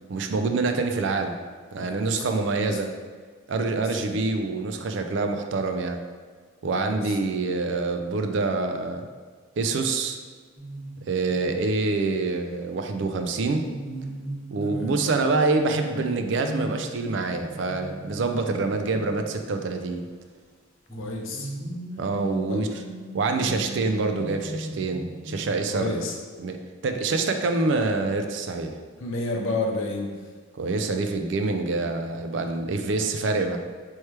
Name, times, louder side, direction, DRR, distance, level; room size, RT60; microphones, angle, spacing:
voice 1, 0.1-1.4 1.7-2.9 3.5-6.0 6.6-9.1 9.6-10.2 11.1-13.6 14.5-20.1 22.0-22.7 23.1-26.1 26.4-26.6 26.8-28.8 30.5-33.6, right 3 dB, 60° right, 6 dB, 0.3 m, -26 dB
voice 2, 1.8-2.8 3.6-4.0 6.7-7.2 14.6-15.0 20.9-21.5 22.5-22.8 25.7-26.2 29.0-30.2, left 2 dB, 75° left, 1 dB, 0.6 m, -32 dB
sound 1, 10.6-11.5 13.5-19.5 20.9-25.3, right 1 dB, 15° left, 1.2 m, -38 dB
4.4 x 3.1 x 3.2 m, 1.5 s
head